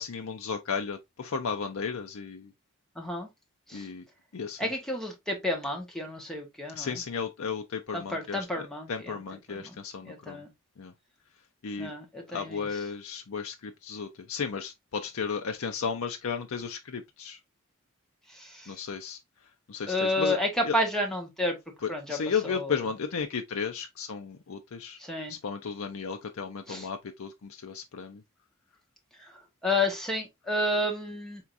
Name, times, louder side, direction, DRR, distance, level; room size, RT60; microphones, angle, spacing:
voice 1, 0.0-2.5 3.7-4.0 4.3-4.7 6.7-10.4 10.8-10.9 11.6-11.9 12.3-17.4 18.7-19.2 19.7-20.4 20.6-20.8 21.8-25.0 25.3-28.2, left 6 dB, 80° left, 0.5 m, -34 dB
voice 2, 3.0-3.3 3.7-3.8 4.6-7.0 7.9-9.2 9.6-9.7 10.0-10.5 11.8-12.7 18.4-18.7 19.9-21.6 21.9-22.2 22.4-22.7 25.0-25.3 26.7-26.9 29.6-31.4, left 1 dB, ahead, 1.1 m, -30 dB
4.5 x 3.5 x 2.5 m
head